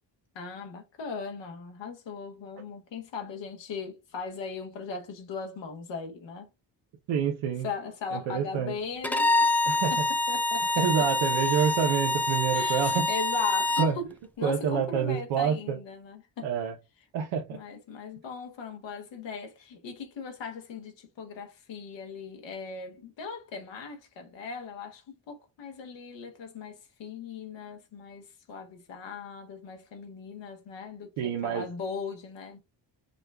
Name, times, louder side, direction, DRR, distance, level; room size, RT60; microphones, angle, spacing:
voice 1, 0.3-6.5 7.6-9.5 9.9-10.8 12.5-16.5 17.5-32.6, left 5 dB, 75° left, 1.1 m, -39 dB
voice 2, 7.1-7.7 8.1-8.7 9.7-9.9 10.8-13.1 13.8-13.9 14.4-15.5 16.4-16.7 17.1-17.4 31.2-31.6, right 7 dB, 85° right, 0.8 m, -27 dB
Bowed string instrument, 9.0-13.9, left 2 dB, 5° left, 0.5 m, -26 dB
5.2 x 2.3 x 3.3 m
cardioid pair, 70°, 45 cm